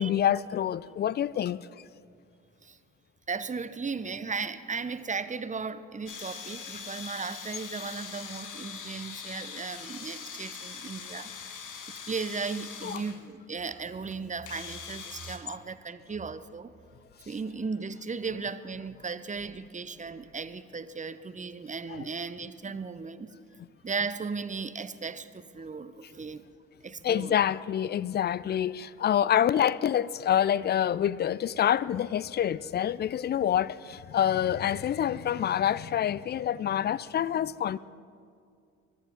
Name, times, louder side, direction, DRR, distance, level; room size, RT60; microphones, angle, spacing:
voice 1, 0.0-1.7 12.8-13.0 21.9-22.1 27.0-37.8, left 10 dB, 30° left, 0.4 m, -27 dB
voice 2, 3.3-11.3 12.1-16.7 17.3-23.3 23.8-26.5 26.8-27.4, right 4 dB, 20° right, 0.8 m, -36 dB
sound 1, 6.1-13.2 14.1-14.2 14.5-15.4, left 6 dB, 50° left, 1.6 m, -42 dB
22.5 x 9.5 x 5.1 m
figure-of-eight pair, 45°, 39 cm